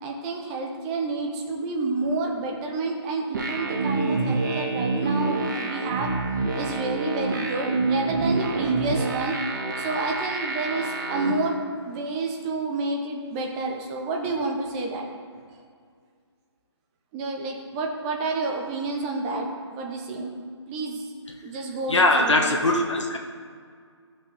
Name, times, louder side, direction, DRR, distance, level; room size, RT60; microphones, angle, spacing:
voice 1, 0.0-6.1 6.5-9.4 9.8-15.1 17.1-19.5 19.8-20.4 20.7-21.1 21.4-22.6, right 3 dB, 15° right, 1 dB, 0.8 m, -29 dB
sound 1, 3.3-11.3, right 3 dB, 45° right, 1.3 m, -27 dB
voice 2, 21.9-23.2, left 2 dB, 90° left, 1 dB, 1.2 m, -21 dB
13.5 x 5.9 x 3.4 m, 2.1 s
hypercardioid pair, 155°, 15 cm